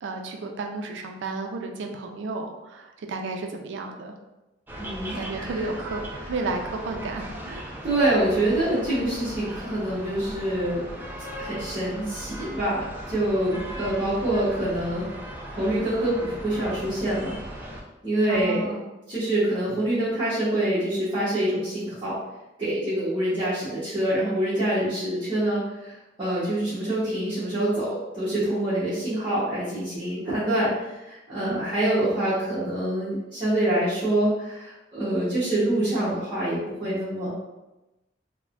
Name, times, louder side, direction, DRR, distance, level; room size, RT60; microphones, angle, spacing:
voice 1, 0.0-4.1 5.1-7.7 13.5-13.8 18.3-18.9 31.4-31.7, right 3 dB, 80° right, 3 dB, 0.4 m, -32 dB
sound 1, 4.7-17.8, equal, 10° right, 0.3 m, -38 dB
voice 2, 4.8-5.5 7.8-10.8 11.4-15.0 15.5-17.3 18.0-18.7 19.1-22.1 22.6-37.3, right 1 dB, 25° right, -14 dB, 1.0 m, -26 dB
3.3 x 2.1 x 2.4 m, 1.0 s
head